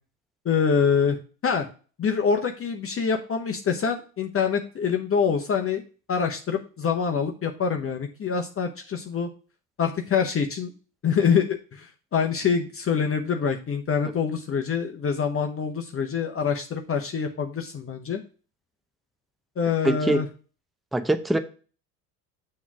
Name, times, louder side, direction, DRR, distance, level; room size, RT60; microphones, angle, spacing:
voice 1, 0.4-1.2 1.4-1.7 2.0-5.8 6.1-9.3 9.8-10.7 11.0-18.2 19.6-20.3, left 6 dB, 30° left, 0.9 m, -25 dB
voice 2, 19.8-20.2 20.9-21.4, right 1 dB, ahead, 0.5 m, -22 dB
7.1 x 3.2 x 6.0 m
hypercardioid pair, 70°, 46 cm